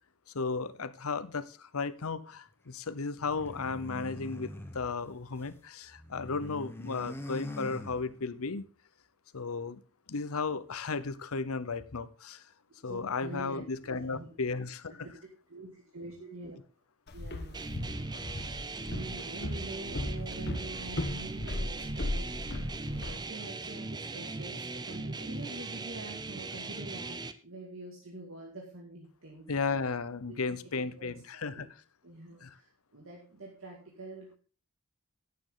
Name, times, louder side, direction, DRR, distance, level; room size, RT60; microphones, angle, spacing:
voice 1, 0.3-8.6 9.3-9.8 10.1-12.4 12.8-14.9 29.5-31.7 32.4-32.5, left 4 dB, 75° left, 15 dB, 0.8 m, -34 dB
sound 1, 3.2-5.6 5.9-8.5, left 1 dB, 10° left, 1.0 m, -43 dB
voice 2, 12.8-14.3 15.0-15.1 15.5-16.6 17.1-17.6 18.1-22.3 22.9-29.5 30.3-31.7 32.0-32.7 32.9-34.4, right 2 dB, 65° right, -1 dB, 2.2 m, -46 dB
Walk footsteps, 17.1-23.2, left 1 dB, 50° left, 1.1 m, -37 dB
sound 2, 17.5-27.3, right 3 dB, 20° right, 0.6 m, -39 dB
11.5 x 9.7 x 3.8 m, 0.37 s
head